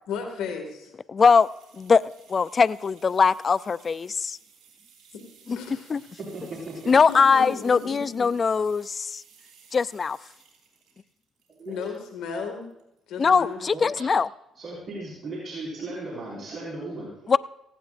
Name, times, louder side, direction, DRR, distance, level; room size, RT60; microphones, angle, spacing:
voice 1, 0.1-0.9 5.5-5.9 7.1-8.3 11.6-12.6 13.1-13.6, left 5 dB, 80° left, 3 dB, 2.0 m, -34 dB
voice 2, 1.1-1.5 1.8-2.0 2.3-4.4 5.9-6.0 6.9-9.2 9.7-10.2 13.2-14.3 17.3-17.4, left 5 dB, 40° left, 18 dB, 0.4 m, -21 dB
sound 1, 1.2-12.2 12.6-13.2 13.5-13.6, right 6 dB, 70° right, 5.2 m, -56 dB
voice 3, 6.2-6.9 11.6-11.9 13.7-13.9 14.6-17.3, right 2 dB, 50° right, -6 dB, 5.1 m, -36 dB
18.5 x 16.0 x 2.6 m, 0.86 s
supercardioid pair, 70°, 0 cm